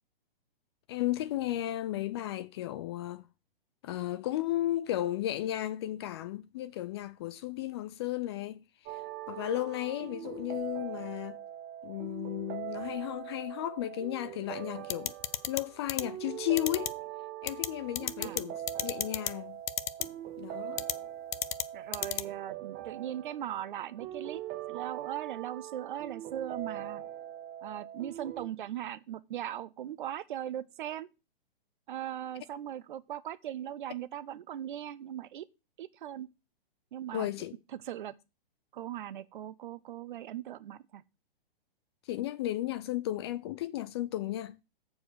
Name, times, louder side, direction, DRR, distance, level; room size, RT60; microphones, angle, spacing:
voice 1, 0.9-3.3 3.8-9.0 9.3-11.4 11.8-15.1 15.5-16.9 17.4-19.6 20.4-20.8 37.1-37.5 42.1-44.6, left 14 dB, 30° left, 0.4 m, -34 dB
sound 1, 8.9-28.5, right 12 dB, 25° right, 0.8 m, -42 dB
sound 2, 14.9-15.6 15.9-16.0 16.6-16.9 17.5-17.7 18.0-18.4 18.7-19.3 19.7-20.0 20.8-20.9 21.3-21.6 21.9-22.2, left 11 dB, 55° left, 0.7 m, -31 dB
voice 2, 21.7-24.4 24.7-27.0 27.6-31.1 31.9-35.5 35.8-36.3 36.9-37.3 37.7-38.1 38.7-41.0, right 11 dB, 55° right, 0.9 m, -39 dB
7.5 x 4.6 x 6.3 m
hypercardioid pair, 130°, 29 cm